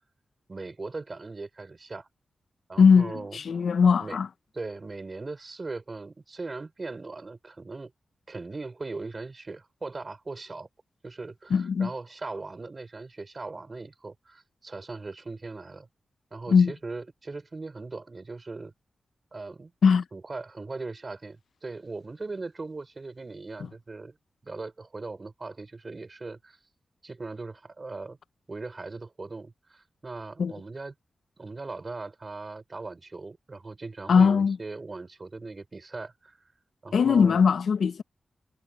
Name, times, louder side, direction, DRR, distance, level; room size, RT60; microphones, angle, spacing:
voice 1, 0.5-2.1 2.7-3.4 4.0-4.2 4.5-7.9 8.3-10.7 11.0-15.9 16.3-18.7 19.3-19.7 20.1-24.2 24.4-26.6 27.0-28.2 28.5-30.9 31.4-36.4 36.8-37.4, right 3 dB, 35° right, 4.6 m, -39 dB
voice 2, 2.8-4.3 11.5-11.9 16.5-16.7 19.8-20.0 30.4-30.5 34.1-34.6 36.9-38.0, left 6 dB, 80° left, 0.7 m, -20 dB
wide cardioid pair, 95°, 0 cm